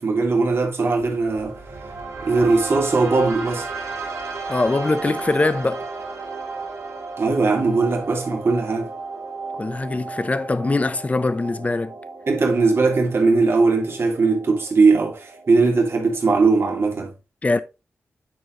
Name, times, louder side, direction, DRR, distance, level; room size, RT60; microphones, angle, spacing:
voice 1, 0.0-1.6 2.2-3.7 7.2-8.9 12.3-17.1, right 3 dB, 55° right, 2.6 m, -19 dB
sound 1, 1.0-17.0, right 4 dB, 85° right, 2.8 m, -35 dB
voice 2, 4.5-5.8 9.6-11.9 17.4-17.6, left 3 dB, 30° left, 0.8 m, -22 dB
9.2 x 4.6 x 3.9 m
wide cardioid pair, 80°, 5 cm